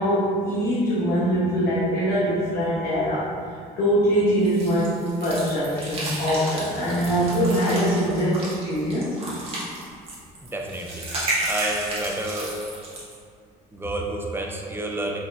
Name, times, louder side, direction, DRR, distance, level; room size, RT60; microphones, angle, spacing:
voice 1, 0.0-3.3 3.8-9.2, equal, 65° left, -10 dB, 1.0 m, -23 dB
sound 1, 4.4-13.1, right 1 dB, 35° right, 1.3 m, -32 dB
voice 2, 10.4-11.1 11.5-12.5 13.7-15.2, right 1 dB, 15° right, 0 dB, 0.4 m, -30 dB
4.2 x 3.5 x 2.5 m, 2.3 s
cardioid pair, 110°, 17 cm